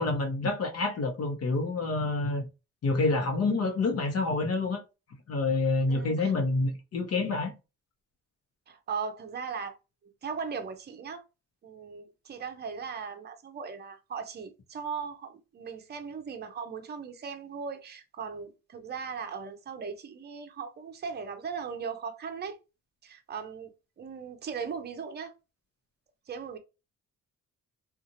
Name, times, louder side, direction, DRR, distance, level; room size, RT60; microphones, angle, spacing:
voice 1, 0.0-2.5 2.8-4.8 5.3-7.5, left 3 dB, 50° left, 1.0 m, -27 dB
voice 2, 5.9-6.3 8.7-9.8 10.0-11.2 11.6-22.6 23.0-25.3 26.3-26.6, right 6 dB, 35° right, 0.6 m, -38 dB
2.7 x 2.5 x 2.7 m
cardioid pair, 90°, 30 cm